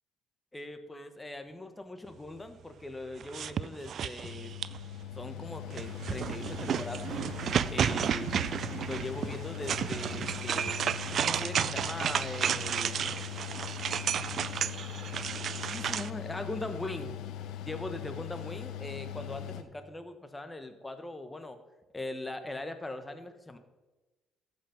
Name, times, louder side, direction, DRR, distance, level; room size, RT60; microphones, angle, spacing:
voice 1, 0.5-4.5 5.1-7.1 7.7-8.3 8.9-13.2 15.7-17.2 17.7-21.6 21.9-23.6, left 2 dB, 15° left, 9 dB, 1.2 m, -40 dB
sound 1, 3.2-4.9 5.7-16.1, right 8 dB, 55° right, 0.3 m, -32 dB
Mechanical fan, 4.2-19.6, left 10 dB, 75° left, 0.6 m, -40 dB
14.0 x 5.4 x 5.1 m, 1.2 s
supercardioid pair, 75°, 0 cm